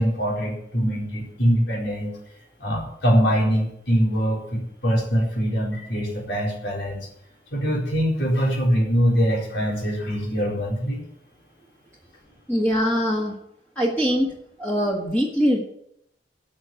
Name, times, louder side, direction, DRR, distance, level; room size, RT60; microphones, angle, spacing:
voice 1, 0.0-2.2 2.6-7.1 7.5-11.0, equal, 75° left, -3 dB, 4.4 m, -23 dB
voice 2, 12.5-13.3 13.8-14.3 14.6-15.6, equal, 10° left, -3 dB, 1.8 m, -22 dB
12.5 x 6.4 x 9.3 m, 0.75 s
head